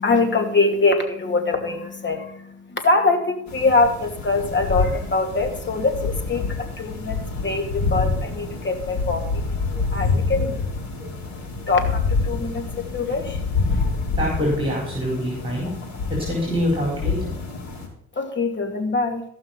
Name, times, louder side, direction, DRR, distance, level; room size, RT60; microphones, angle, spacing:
voice 1, 0.0-13.4 13.7-14.0 18.1-19.2, left 3 dB, 40° left, 5 dB, 2.5 m, -24 dB
sound 1, 3.5-17.9, left 4 dB, 65° left, 4.1 m, -27 dB
voice 2, 14.1-15.7 16.2-17.3, equal, 15° right, -2 dB, 4.9 m, -25 dB
15.0 x 5.9 x 6.0 m, 0.72 s
cardioid pair, 90°, 30 cm